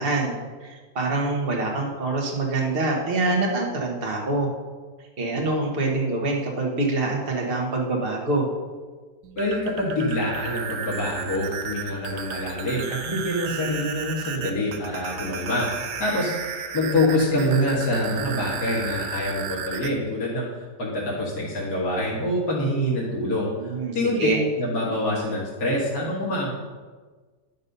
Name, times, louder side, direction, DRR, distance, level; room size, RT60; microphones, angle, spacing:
voice 1, 0.0-4.5 5.2-8.5 23.6-24.4, right 2 dB, 35° right, 0 dB, 1.5 m, -25 dB
sound 1, 9.2-19.9, right 6 dB, 85° right, 1.4 m, -34 dB
voice 2, 9.4-16.3 16.7-20.5 20.8-26.5, left 1 dB, 70° left, -5 dB, 2.3 m, -25 dB
11.0 x 5.5 x 5.4 m, 1.4 s
omnidirectional pair, 1.7 m